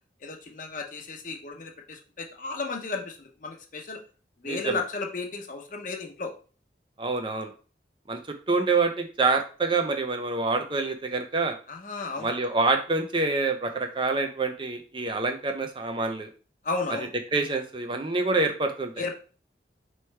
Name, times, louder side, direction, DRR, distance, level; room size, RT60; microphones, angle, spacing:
voice 1, 0.2-4.0 4.4-6.3 11.7-12.4 16.6-17.1 19.0-19.2, left 3 dB, 45° left, 3 dB, 0.7 m, -34 dB
voice 2, 4.4-4.8 7.0-7.5 8.1-8.2 8.5-11.6 12.2-16.3 17.3-19.0, right 3 dB, 25° right, 5 dB, 0.5 m, -26 dB
4.4 x 3.1 x 3.2 m, 0.38 s
head